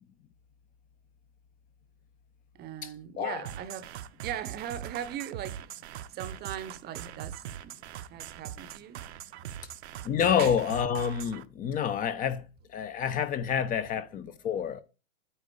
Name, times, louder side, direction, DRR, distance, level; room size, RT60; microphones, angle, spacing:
voice 1, 2.5-5.7 6.1-9.1 9.6-9.7 10.4-10.5, right 10 dB, 30° right, 0.9 m, -40 dB
sound 1, 3.5-11.4, right 11 dB, 65° right, 0.9 m, -41 dB
voice 2, 10.0-12.5 12.7-14.8, left 8 dB, 25° left, 0.9 m, -28 dB
9.1 x 3.8 x 6.8 m
hypercardioid pair, 125°, 35 cm